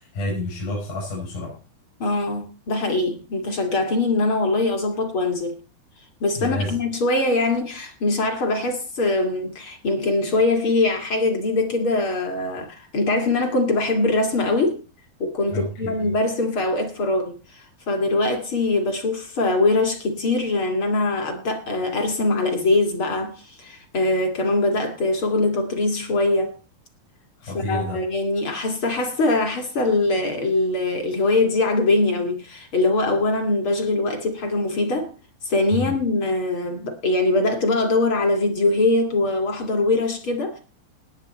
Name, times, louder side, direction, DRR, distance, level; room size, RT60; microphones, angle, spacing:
voice 1, 0.0-1.6 6.4-6.8 15.5-16.1 27.4-28.0 35.7-36.0, left 1 dB, 60° left, 7.8 m, -29 dB
voice 2, 2.0-5.6 6.2-14.8 15.2-26.6 27.7-35.1 35.5-40.6, left 2 dB, 40° left, 2.2 m, -22 dB
19.5 x 8.1 x 4.2 m
omnidirectional pair, 4.5 m